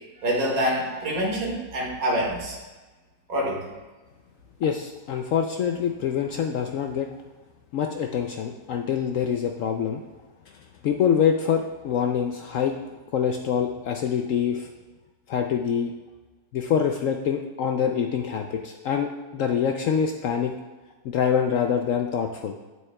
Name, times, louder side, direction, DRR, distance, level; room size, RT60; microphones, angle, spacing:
voice 1, 0.2-2.6 3.3-3.6, equal, 55° right, -3 dB, 2.1 m, -26 dB
voice 2, 4.6-7.1 7.7-10.0 10.8-12.7 13.1-14.7 15.3-15.9 16.5-20.5 21.1-22.5, left 7 dB, 75° left, 4 dB, 0.7 m, -25 dB
9.4 x 7.7 x 2.2 m, 1.2 s
omnidirectional pair, 1.9 m